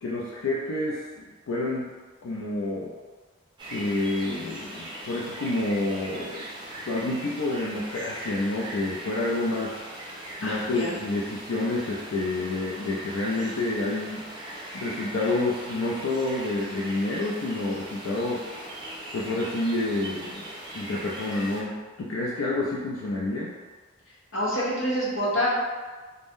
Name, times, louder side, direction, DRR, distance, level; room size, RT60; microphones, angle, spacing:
voice 1, 0.0-1.9 2.2-2.9 3.7-6.5 6.9-9.8 10.4-14.2 14.7-18.4 19.1-20.4 20.7-23.5, left 2 dB, 85° left, -5 dB, 0.4 m, -28 dB
sound 1, 3.6-21.6, right 1 dB, 25° right, 0.5 m, -40 dB
voice 2, 10.4-10.9 24.3-25.5, equal, 70° left, -7 dB, 0.9 m, -27 dB
2.5 x 2.1 x 3.5 m, 1.3 s
head